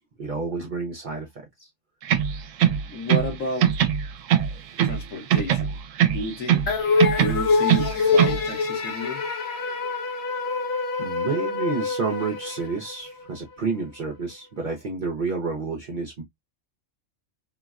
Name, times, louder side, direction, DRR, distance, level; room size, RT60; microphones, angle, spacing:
voice 1, 0.2-1.7 11.0-16.2, right 4 dB, 50° right, 0.6 m, -30 dB
sound 1, 2.0-3.3 3.6-5.0 5.3-6.7 7.0-8.4, right 10 dB, 80° right, 0.9 m, -21 dB
voice 2, 2.9-3.8 4.8-5.8 6.1-6.7 7.2-9.3, left 1 dB, 85° left, 1.3 m, -32 dB
sound 2, 6.7-13.2, left 4 dB, 60° left, 1.0 m, -25 dB
3.9 x 2.1 x 2.3 m
omnidirectional pair, 1.3 m